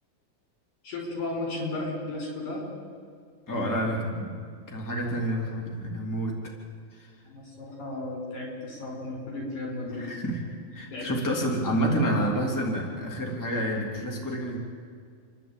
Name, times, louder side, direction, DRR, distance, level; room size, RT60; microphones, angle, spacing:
voice 1, 0.8-2.6 3.5-3.8 7.2-10.1 10.9-11.1, left 2 dB, 75° left, -1 dB, 7.5 m, -34 dB
voice 2, 3.5-4.4 4.7-6.5 6.9-7.1 10.0-10.4 10.7-14.6, equal, 5° left, -1 dB, 2.6 m, -29 dB
29.0 x 11.5 x 9.0 m, 2.1 s
omnidirectional pair, 3.5 m